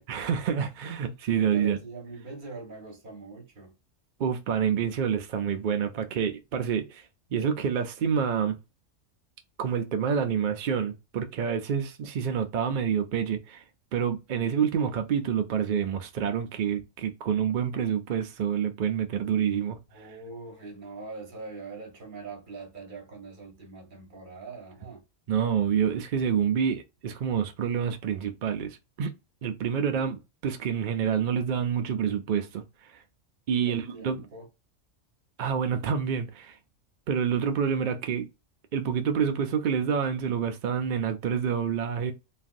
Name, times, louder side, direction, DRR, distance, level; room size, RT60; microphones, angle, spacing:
voice 1, 0.1-1.8 4.2-8.6 9.6-13.6 13.9-20.1 25.3-29.1 29.4-33.0 33.5-34.3 35.4-36.6 37.1-38.3 38.7-42.1, right 7 dB, 70° right, 0.4 m, -28 dB
voice 2, 1.3-3.7 19.9-25.0 33.5-34.5, right 3 dB, 40° right, 1.1 m, -42 dB
3.2 x 2.4 x 2.5 m
omnidirectional pair, 1.3 m